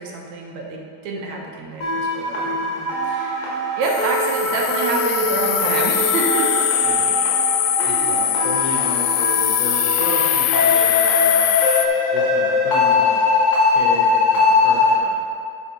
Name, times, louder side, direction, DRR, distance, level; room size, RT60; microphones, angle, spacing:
voice 1, 0.0-6.7 7.8-8.2, right 2 dB, 75° right, -1 dB, 2.3 m, -27 dB
sound 1, 1.8-14.9, left 3 dB, 50° left, 2.8 m, -21 dB
sound 2, 3.8-11.9, left 12 dB, 85° left, 2.0 m, -21 dB
voice 2, 6.8-7.2 7.8-11.4 12.1-13.2 13.7-15.1, left 3 dB, 65° left, -5 dB, 2.1 m, -32 dB
9.6 x 5.1 x 5.8 m, 2.4 s
omnidirectional pair, 3.3 m